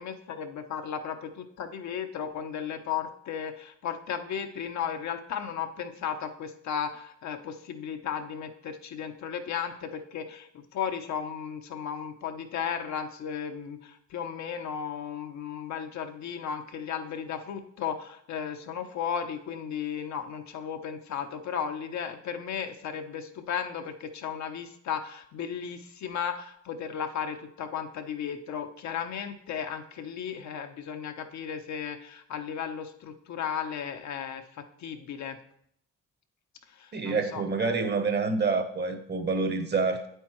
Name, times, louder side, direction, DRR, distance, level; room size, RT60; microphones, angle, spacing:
voice 1, 0.0-34.4 34.8-35.4 36.8-37.4, left 8 dB, 65° left, 0.8 m, -35 dB
voice 2, 36.9-40.1, right 4 dB, 35° right, 1.1 m, -27 dB
8.5 x 8.0 x 3.1 m
cardioid pair, 90°, 30 cm